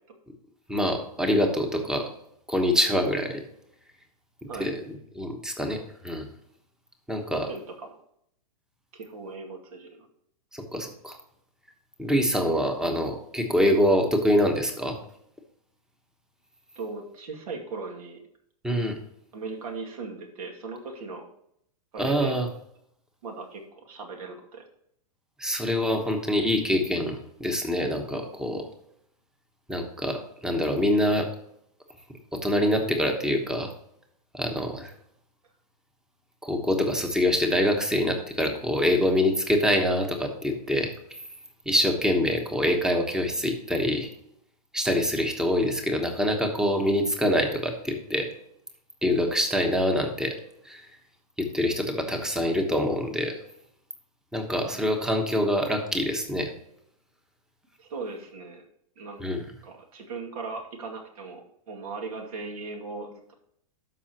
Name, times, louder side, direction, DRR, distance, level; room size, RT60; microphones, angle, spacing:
voice 1, 0.7-2.1 2.5-3.4 4.4-4.8 5.1-6.3 7.1-7.5 10.5-11.2 12.0-15.0 18.6-19.0 22.0-22.5 25.4-28.6 29.7-31.3 32.3-33.7 34.3-34.9 36.4-40.9 41.6-44.1 44.7-48.3 49.0-50.4 50.6-50.9 51.4-53.4 54.3-56.5 59.2-59.4, equal, 5° right, 5 dB, 1.1 m, -25 dB
voice 2, 7.5-7.9 8.9-10.1 16.8-18.2 18.7-18.8 19.3-21.2 21.9-22.3 23.2-24.6 54.6-54.8 57.8-58.6 59.0-59.2 59.6-63.3, right 4 dB, 70° right, 2 dB, 2.3 m, -38 dB
12.5 x 5.6 x 2.9 m, 0.72 s
hypercardioid pair, 145°, 19 cm